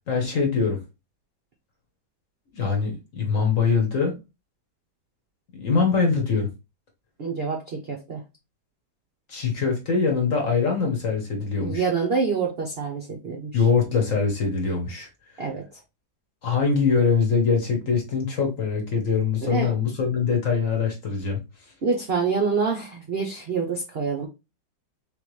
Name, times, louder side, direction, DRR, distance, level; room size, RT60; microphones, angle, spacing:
voice 1, 0.1-0.8 2.5-4.1 5.6-6.5 9.3-11.8 13.5-15.1 16.4-21.4, left 5 dB, 45° left, 1.3 m, -23 dB
voice 2, 7.2-8.2 11.6-13.7 15.4-15.8 19.4-19.7 21.8-24.3, right 5 dB, 60° right, 0.6 m, -26 dB
3.9 x 3.5 x 3.1 m
omnidirectional pair, 2.2 m